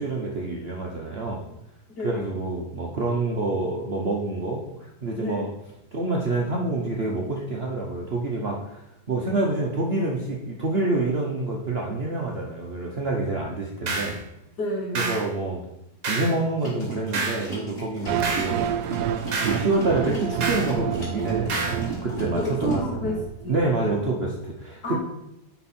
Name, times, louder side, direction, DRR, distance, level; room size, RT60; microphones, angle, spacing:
voice 1, 0.0-1.4 2.0-5.5 5.9-8.8 9.1-14.2 14.9-15.6 16.1-18.9 19.4-22.8 23.5-25.0, right 2 dB, 45° right, -2 dB, 1.0 m, -27 dB
voice 2, 2.0-2.3 5.1-5.5 14.6-15.1 18.1-18.3 22.3-23.9 24.8-25.0, equal, 80° left, -2 dB, 2.3 m, -30 dB
sound 1, 13.9-14.2 14.9-15.3 16.0-16.4 17.1-17.5 18.2-18.5 19.3-19.6 20.4-20.7 21.5-21.8, right 3 dB, 60° right, 1.5 m, -28 dB
sound 2, 16.6-22.8, right 1 dB, 35° left, 3.0 m, -37 dB
sound 3, 18.1-24.1, right 8 dB, 75° right, 1.1 m, -29 dB
10.0 x 4.6 x 4.3 m, 0.86 s
omnidirectional pair, 1.8 m